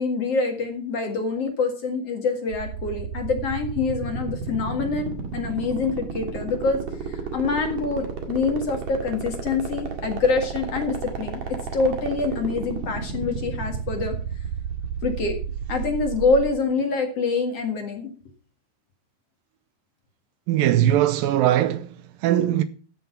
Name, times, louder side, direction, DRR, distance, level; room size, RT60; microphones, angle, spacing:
voice 1, 0.0-11.4 11.7-14.1 15.0-15.3 15.7-18.1, left 4 dB, 45° left, 2.6 m, -25 dB
sound 1, 2.5-16.5, right 6 dB, 55° right, 2.9 m, -31 dB
voice 2, 20.5-22.6, right 12 dB, 80° right, 2.3 m, -20 dB
14.0 x 6.9 x 5.9 m
omnidirectional pair, 4.3 m